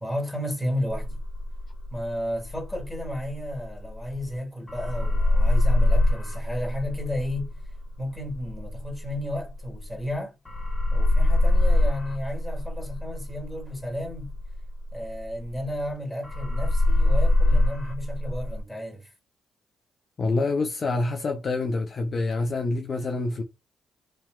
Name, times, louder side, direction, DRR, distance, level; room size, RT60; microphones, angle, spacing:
voice 1, 0.0-1.2 1.9-7.5 8.0-10.4 10.9-14.4 14.9-19.1, left 1 dB, 10° left, 1.8 m, -33 dB
sound 1, 0.9-4.4 4.7-10.2 10.5-15.9 16.2-18.6, left 1 dB, 30° left, 1.2 m, -24 dB
voice 2, 20.2-23.4, left 3 dB, 50° left, 0.6 m, -26 dB
3.4 x 2.8 x 2.3 m
hypercardioid pair, 45°, 0 cm